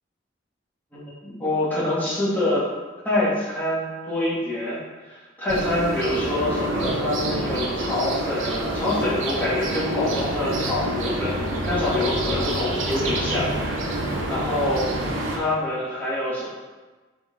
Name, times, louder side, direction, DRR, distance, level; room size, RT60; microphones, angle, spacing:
voice 1, 0.9-2.7 3.0-4.8 5.1-11.4 11.6-16.5, left 1 dB, 10° left, -9 dB, 1.9 m, -26 dB
sound 1, 5.5-15.4, right 1 dB, 75° right, 0.9 m, -27 dB
6.8 x 3.7 x 3.9 m, 1.3 s
head